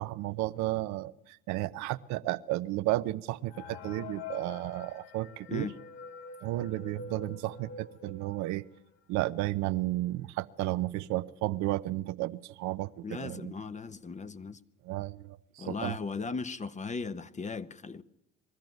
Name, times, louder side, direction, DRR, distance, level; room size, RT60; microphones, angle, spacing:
voice 1, 0.0-5.7 6.4-8.6 9.1-13.5 14.8-16.0, right 17 dB, 70° right, 0.8 m, -33 dB
sound 1, 3.5-8.9 9.4-9.5 9.7-9.8 10.5-10.6 11.0-11.3, left 5 dB, 85° left, 1.0 m, -47 dB
voice 2, 13.0-14.6 15.6-18.0, left 4 dB, 25° left, 0.9 m, -37 dB
21.5 x 13.5 x 9.2 m
supercardioid pair, 80°, 30 cm